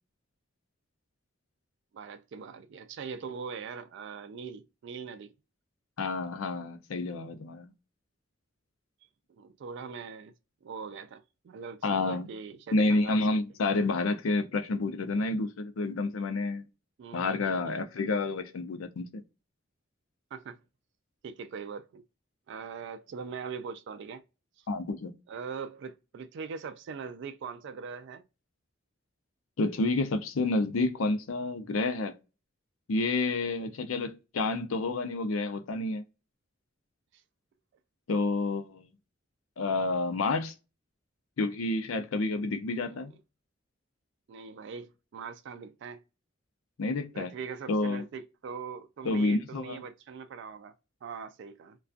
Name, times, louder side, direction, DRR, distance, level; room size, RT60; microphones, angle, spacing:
voice 1, 1.9-5.3 9.3-10.3 10.6-13.2 17.0-17.8 20.3-20.6 21.2-22.0 22.5-24.2 25.3-28.2 42.8-43.1 44.3-46.0 47.1-50.7 51.0-51.8, right 6 dB, 60° right, 0.3 m, -41 dB
voice 2, 6.0-7.7 11.8-12.3 12.7-16.6 17.1-19.2 24.7-25.1 29.6-32.1 32.9-36.0 38.1-38.9 39.6-40.5 41.4-43.1 46.8-47.3 47.7-48.0 49.0-49.8, left 2 dB, 85° left, 0.5 m, -29 dB
2.3 x 2.2 x 2.5 m
head